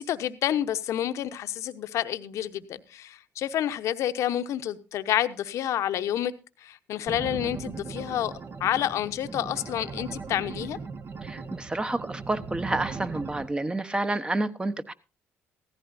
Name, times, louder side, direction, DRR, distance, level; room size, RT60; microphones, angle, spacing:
voice 1, 0.0-6.3 6.6-10.8, left 11 dB, 70° left, 10 dB, 0.9 m, -29 dB
sound 1, 7.1-13.5, right 4 dB, 45° right, 1.4 m, -38 dB
voice 2, 11.2-14.9, right 2 dB, 15° right, 11 dB, 1.1 m, -29 dB
16.5 x 15.0 x 2.6 m, 0.30 s
supercardioid pair, 70°, 5 cm